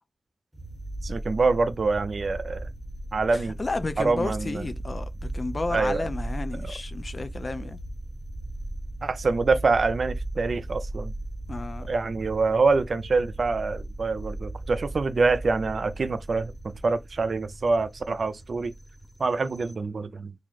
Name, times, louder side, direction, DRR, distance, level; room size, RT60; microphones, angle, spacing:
sound 1, 0.5-19.7, right 1 dB, 10° right, 1.0 m, -37 dB
voice 1, 1.0-2.7 3.1-3.6 4.0-4.7 5.7-6.1 9.0-11.1 11.9-18.7 19.2-20.3, right 4 dB, 70° right, 0.5 m, -25 dB
voice 2, 3.3-7.8 11.5-11.9, left 3 dB, 50° left, 0.5 m, -32 dB
3.0 x 2.6 x 4.0 m
wide cardioid pair, 70°, 0 cm